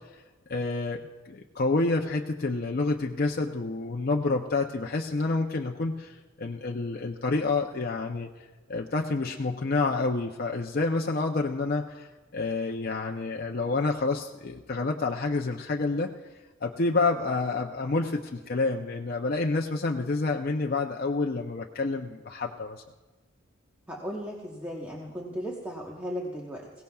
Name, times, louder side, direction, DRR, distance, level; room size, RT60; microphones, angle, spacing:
voice 1, 0.5-1.0 1.2-8.3 8.7-16.1 16.6-22.8, left 3 dB, 50° left, 1 dB, 0.6 m, -28 dB
voice 2, 23.9-26.7, equal, 10° right, -3 dB, 1.1 m, -36 dB
21.5 x 17.5 x 2.3 m, 1.3 s
head